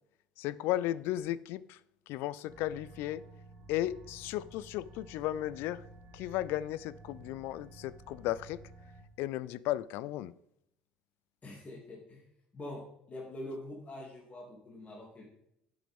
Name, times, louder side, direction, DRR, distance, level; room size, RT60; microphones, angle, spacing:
voice 1, 0.4-1.8 2.1-3.2 3.7-5.8 6.1-8.6 9.2-10.3, left 14 dB, 65° left, 19 dB, 0.4 m, -35 dB
sound 1, 2.5-9.0, right 2 dB, 65° right, 2.3 m, -53 dB
voice 2, 11.4-12.2 12.5-15.3, left 1 dB, 35° left, -3 dB, 2.6 m, -44 dB
12.0 x 7.7 x 3.6 m, 0.78 s
hypercardioid pair, 60°, 4 cm